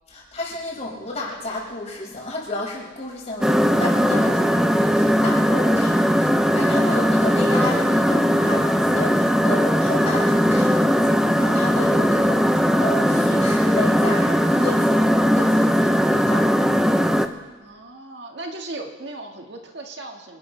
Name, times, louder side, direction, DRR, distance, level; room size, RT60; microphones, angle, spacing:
voice 1, 0.1-16.9, left 2 dB, 35° left, -5 dB, 5.6 m, -32 dB
sound 1, 3.4-17.3, equal, 5° right, 0.6 m, -19 dB
voice 2, 17.6-20.4, right 2 dB, 65° right, 2 dB, 1.8 m, -37 dB
26.5 x 13.5 x 3.3 m, 1.4 s
head